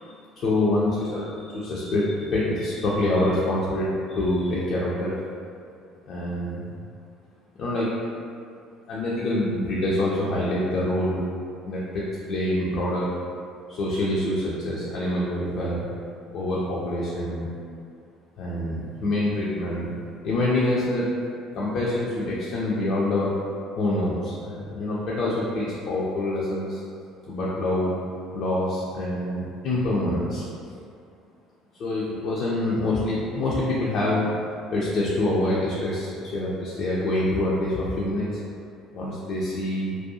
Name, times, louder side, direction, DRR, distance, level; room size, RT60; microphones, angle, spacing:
voice 1, 0.0-5.1 6.1-6.7 7.6-7.9 8.9-11.2 11.7-13.1 13.7-15.9 16.3-17.5 18.4-19.9 20.2-21.1 21.5-23.3 23.8-26.8 27.3-28.0 28.3-30.4 31.8-34.3 34.7-38.3 38.9-40.0, left 1 dB, 55° left, -6 dB, 0.4 m, -26 dB
2.4 x 2.2 x 2.6 m, 2.4 s
figure-of-eight pair, 55°, 0 cm